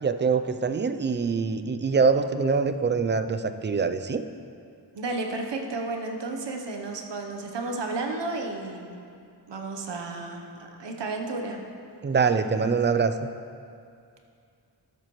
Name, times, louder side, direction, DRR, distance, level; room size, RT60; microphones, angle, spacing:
voice 1, 0.0-4.2 12.0-13.1, right 5 dB, 30° right, 10 dB, 0.4 m, -24 dB
voice 2, 4.9-9.0 9.5-10.4 10.8-11.6, right 3 dB, 90° right, 3 dB, 1.0 m, -32 dB
12.5 x 7.5 x 3.1 m, 2.4 s
wide cardioid pair, 85°, 41 cm